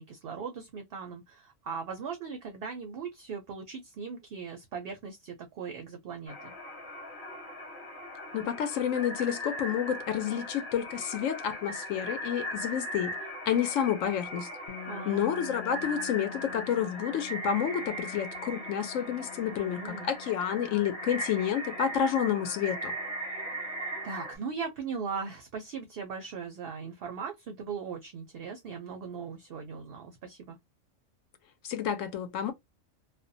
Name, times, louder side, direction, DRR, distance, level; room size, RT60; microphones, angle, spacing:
voice 1, 0.0-6.5 14.9-15.3 19.6-20.1 24.0-30.6, right 5 dB, 65° right, 0.6 m, -39 dB
sound 1, 6.3-24.4, equal, 25° left, 0.9 m, -39 dB
voice 2, 8.3-13.2 13.5-14.5 15.0-22.9 31.6-32.5, left 9 dB, 75° left, 1.0 m, -30 dB
sound 2, 14.7-24.4, left 8 dB, 55° left, 0.5 m, -50 dB
2.5 x 2.1 x 2.5 m
omnidirectional pair, 1.4 m